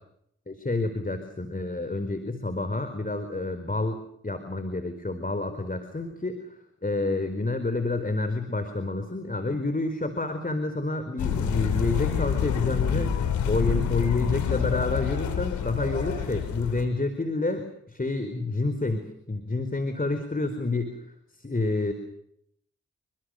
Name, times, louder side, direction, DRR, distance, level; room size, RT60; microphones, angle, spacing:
voice 1, 0.5-6.5 6.8-13.1 13.4-21.0 21.4-21.9, left 2 dB, 30° left, 8 dB, 4.5 m, -29 dB
sound 1, 11.2-16.8, left 8 dB, 90° left, 3.4 m, -27 dB
29.0 x 23.0 x 6.6 m, 0.73 s
supercardioid pair, 40°, 29 cm